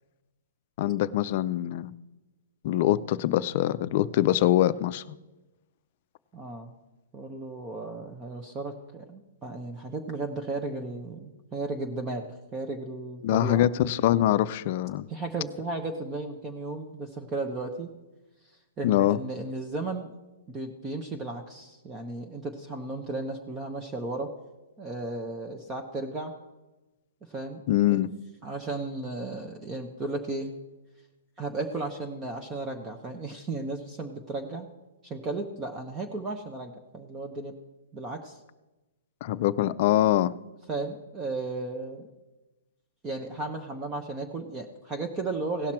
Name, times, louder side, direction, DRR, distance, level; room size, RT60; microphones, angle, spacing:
voice 1, 0.8-1.9 2.6-5.1 13.2-15.1 18.8-19.2 27.7-28.1 39.2-40.3, left 13 dB, 45° left, 14 dB, 0.4 m, -24 dB
voice 2, 6.3-6.7 7.1-13.7 15.1-17.9 18.8-20.2 20.5-24.3 24.8-26.3 27.3-27.6 27.9-28.0 28.4-30.5 31.4-34.7 35.0-37.6 37.9-38.4 40.7-42.1 43.0-45.7, right 2 dB, 20° right, 4 dB, 0.9 m, -34 dB
17.0 x 5.8 x 4.4 m, 1.1 s
hypercardioid pair, 140°, 0 cm